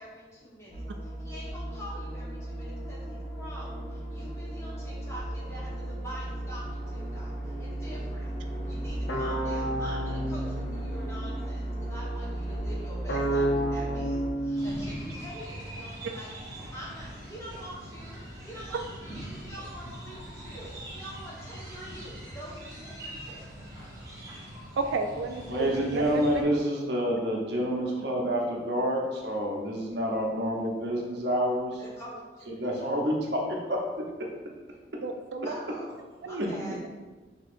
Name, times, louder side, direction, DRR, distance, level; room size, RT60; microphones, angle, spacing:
voice 1, 0.0-8.3 8.7-16.3 16.7-23.5 31.8-33.0 33.4-33.5 35.4-36.9, equal, 15° left, -7 dB, 1.2 m, -45 dB
sound 1, 0.7-14.3, right 1 dB, 40° left, 0.8 m, -35 dB
sound 2, 9.1-11.4 13.1-15.4, right 1 dB, 80° left, 0.7 m, -31 dB
sound 3, 14.5-26.4, right 1 dB, 20° right, 0.9 m, -42 dB
voice 2, 24.8-26.5 35.0-35.6 36.2-36.4, right 3 dB, 80° right, 5 dB, 0.3 m, -32 dB
voice 3, 25.5-31.8 32.5-33.9 34.2-34.3 36.4-36.8, equal, 65° right, -1 dB, 0.8 m, -28 dB
6.4 x 2.9 x 2.5 m, 1.3 s
head